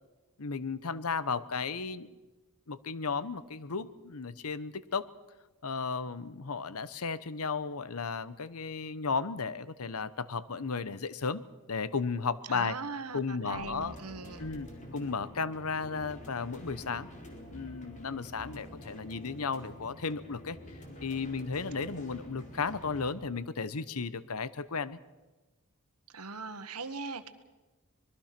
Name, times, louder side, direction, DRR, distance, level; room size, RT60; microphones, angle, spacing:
voice 1, 0.4-2.1 2.7-5.1 5.6-11.4 11.7-12.8 13.1-13.9 14.4-17.1 17.5-20.6 21.0-25.0, left 5 dB, 75° left, 16 dB, 0.9 m, -34 dB
voice 2, 12.5-14.5 26.1-27.3, right 4 dB, 85° right, 10 dB, 1.5 m, -40 dB
sound 1, 13.5-23.1, left 1 dB, 35° left, 3.9 m, -47 dB
25.0 x 21.5 x 6.0 m, 1.2 s
head